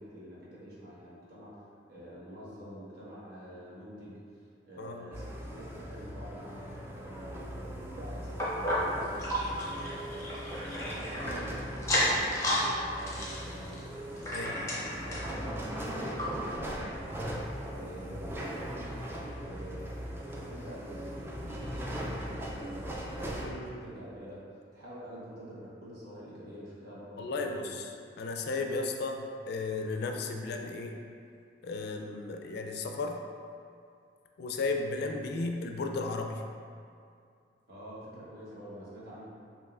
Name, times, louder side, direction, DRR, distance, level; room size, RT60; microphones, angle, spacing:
voice 1, 0.0-4.2 4.7-10.4 10.7-17.3 17.7-19.9 20.3-24.4 24.7-27.8 37.7-39.3, equal, 60° right, -8 dB, 1.1 m, -47 dB
sound 1, 5.1-23.5, equal, 15° right, 0.3 m, -39 dB
sound 2, 8.4-11.4 11.8-12.7 13.0-15.3 15.8-15.9 16.2-16.3 16.9-17.0, left 1 dB, 15° left, 0.7 m, -32 dB
voice 2, 23.4-23.8 27.2-27.9 28.2-30.9 31.6-33.2 34.4-36.4, left 3 dB, 60° left, 3 dB, 0.3 m, -34 dB
5.3 x 2.7 x 2.4 m, 2.3 s
head